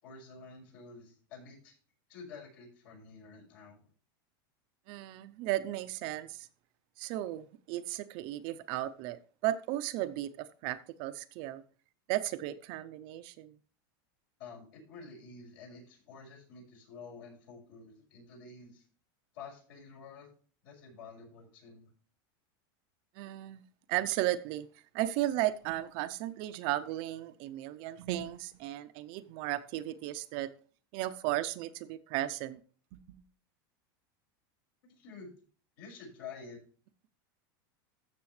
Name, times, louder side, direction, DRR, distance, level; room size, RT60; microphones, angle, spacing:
voice 1, 0.0-1.7 2.1-3.9 14.4-18.8 19.3-20.3 20.6-21.9 34.9-35.3 35.8-36.6, left 4 dB, 65° left, 6.0 m, -49 dB
voice 2, 4.9-6.5 7.0-11.6 12.1-13.5 23.2-23.6 23.9-24.7 24.9-30.5 30.9-32.6 32.9-33.2, right 14 dB, 45° right, 0.6 m, -35 dB
14.0 x 6.7 x 3.2 m
supercardioid pair, 160°, 12 cm